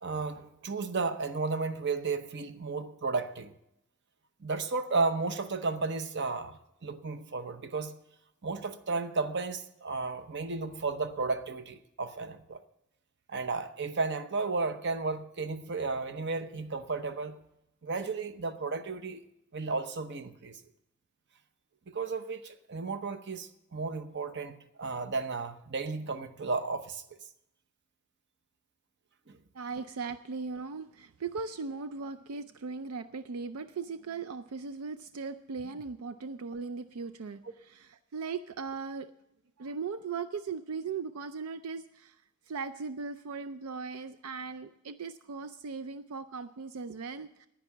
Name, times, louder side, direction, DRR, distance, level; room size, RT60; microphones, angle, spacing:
voice 1, 0.0-3.5 4.4-7.9 8.4-12.6 13.3-17.4 17.8-19.2 19.5-20.6 21.9-27.0 29.3-29.4, right 4 dB, 50° right, 0.8 m, -33 dB
voice 2, 29.5-39.1 39.6-42.2 42.5-47.5, right 4 dB, 80° right, 0.5 m, -38 dB
10.0 x 10.0 x 7.1 m
head